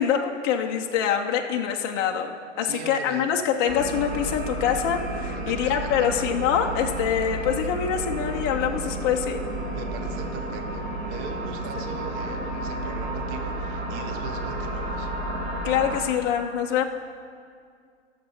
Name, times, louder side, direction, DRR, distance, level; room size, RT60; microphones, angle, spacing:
voice 1, 0.0-9.4 15.6-16.8, left 8 dB, 20° left, 2 dB, 0.4 m, -25 dB
voice 2, 2.6-3.3 5.3-5.7 6.0-6.1 9.7-15.1, right 5 dB, 30° right, 6 dB, 0.6 m, -40 dB
sound 1, 3.7-16.0, right 1 dB, 45° right, 2.2 m, -31 dB
13.0 x 6.6 x 5.4 m, 2.2 s
hypercardioid pair, 130°, 37 cm